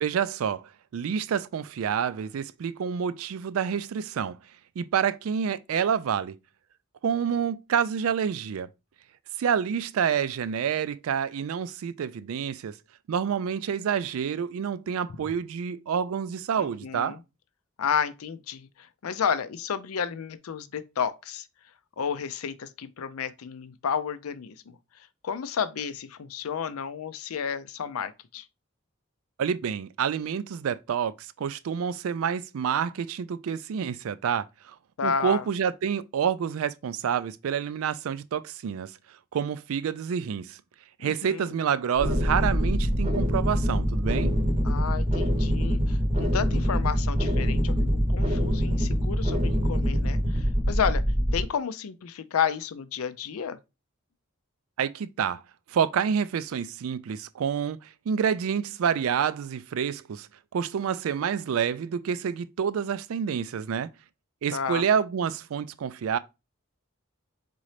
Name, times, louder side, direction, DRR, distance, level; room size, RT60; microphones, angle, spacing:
voice 1, 0.0-4.4 4.8-6.3 7.0-8.7 9.4-12.8 13.1-17.2 29.4-34.8 35.0-38.9 39.3-40.6 41.0-44.4 54.8-55.4 55.7-57.8 58.1-60.3 60.5-63.9 64.4-66.2, right 7 dB, 75° right, 0.3 m, -28 dB
voice 2, 16.6-17.2 17.8-21.5 22.0-24.8 25.2-28.5 35.0-35.5 41.0-41.5 44.6-51.0 51.3-53.6 64.5-64.9, left 7 dB, 85° left, 0.5 m, -31 dB
sound 1, 42.0-51.4, equal, 25° right, 0.7 m, -24 dB
4.1 x 3.8 x 3.2 m
head